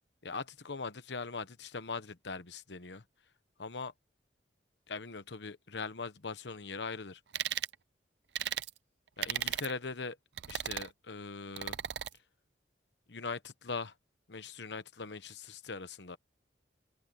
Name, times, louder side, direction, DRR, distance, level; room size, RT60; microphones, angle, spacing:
voice 1, 0.2-3.0 3.6-3.9 4.9-7.2 9.2-10.2 10.5-11.8 13.1-13.9 14.3-16.2, left 4 dB, 75° left, 1.1 m, -41 dB
sound 1, 7.3-7.7 8.3-8.7 9.2-9.7 10.4-10.9 11.6-12.1, right 10 dB, 75° right, 0.6 m, -35 dB
head